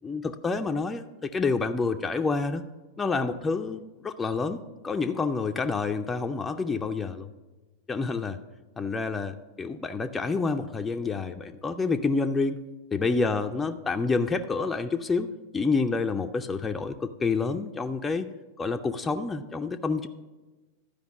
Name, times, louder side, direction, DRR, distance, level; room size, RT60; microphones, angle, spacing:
voice 1, 0.0-2.6 3.0-7.3 7.9-8.4 8.8-12.6 12.9-15.3 15.5-18.3 18.6-20.1, left 4 dB, 15° left, 6 dB, 0.4 m, -28 dB
12.0 x 5.1 x 6.4 m, 1.2 s
figure-of-eight pair, 90°, 0 cm